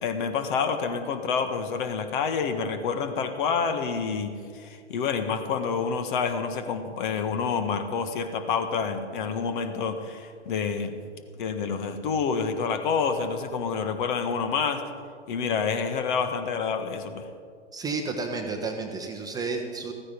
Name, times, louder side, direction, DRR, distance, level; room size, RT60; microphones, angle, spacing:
voice 1, 0.0-11.0 11.4-14.8 15.3-17.3, left 5 dB, 45° left, 8 dB, 1.6 m, -28 dB
voice 2, 17.7-19.9, right 4 dB, 10° right, 3 dB, 1.0 m, -31 dB
15.0 x 14.5 x 5.3 m, 2.1 s
hypercardioid pair, 130°, 35 cm